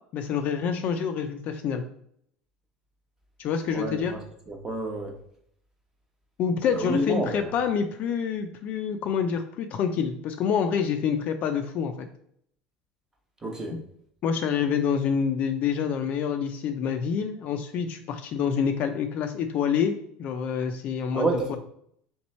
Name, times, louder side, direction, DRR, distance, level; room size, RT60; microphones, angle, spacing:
voice 1, 0.1-1.8 3.4-4.1 6.4-12.1 14.2-19.9 20.2-21.6, left 7 dB, 45° left, 6 dB, 0.4 m, -27 dB
voice 2, 3.7-5.1 6.7-7.5 13.4-13.8 21.1-21.6, right 2 dB, 15° right, 2 dB, 0.8 m, -29 dB
3.2 x 3.1 x 4.1 m, 0.68 s
cardioid pair, 140°, 4 cm